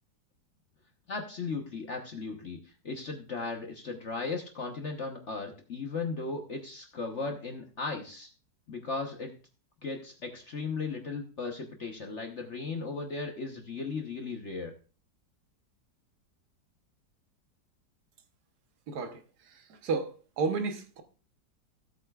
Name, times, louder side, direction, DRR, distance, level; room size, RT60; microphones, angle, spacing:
voice 1, 1.1-2.6 2.8-8.3 8.7-9.3 9.8-14.7, left 4 dB, 45° left, 1.1 m, -36 dB
voice 2, 18.9-19.2 19.5-21.0, right 4 dB, 65° right, 1.6 m, -32 dB
16.5 x 8.1 x 2.3 m
omnidirectional pair, 2.0 m